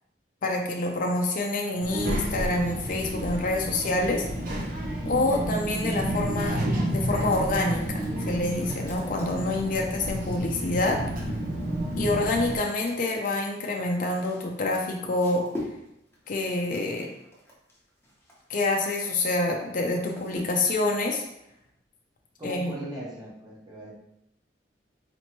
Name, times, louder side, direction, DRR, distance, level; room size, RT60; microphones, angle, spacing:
voice 1, 0.4-4.3 5.1-11.0 12.0-15.5 16.3-17.1 18.5-21.2 22.4-22.7, left 2 dB, 50° left, 1 dB, 0.5 m, -27 dB
Child speech kid speaking, 1.8-12.6, right 1 dB, 55° right, 0.8 m, -30 dB
sound 1, 7.2-10.0 11.0-19.3 19.6-20.8, left 1 dB, 15° left, 1.0 m, -45 dB
voice 2, 22.4-23.9, right 1 dB, 25° right, -7 dB, 1.1 m, -39 dB
4.2 x 3.0 x 2.9 m, 0.81 s
head